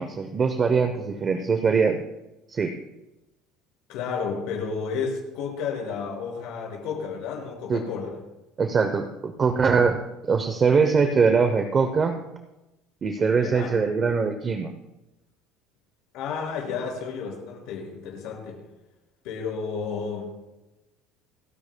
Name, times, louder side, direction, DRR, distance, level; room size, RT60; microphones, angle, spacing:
voice 1, 0.0-2.0 2.5-2.8 7.7-7.8 8.6-10.0 10.3-12.2 13.0-14.7, right 5 dB, 20° right, 6 dB, 0.7 m, -22 dB
voice 2, 3.9-8.2 13.4-13.7 16.1-18.6 19.2-20.3, left 5 dB, 60° left, -1 dB, 5.5 m, -32 dB
29.5 x 10.5 x 2.2 m, 0.99 s
cardioid pair, 175°, 0 cm